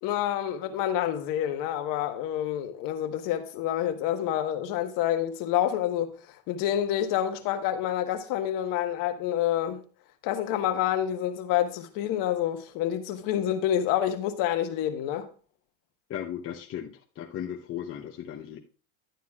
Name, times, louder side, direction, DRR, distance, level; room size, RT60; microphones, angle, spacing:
voice 1, 0.0-6.2 6.5-9.8 10.2-15.3, left 11 dB, 55° left, 1.3 m, -28 dB
voice 2, 16.1-18.6, left 10 dB, 35° left, 0.8 m, -36 dB
12.0 x 9.2 x 2.4 m
supercardioid pair, 115°, 40 cm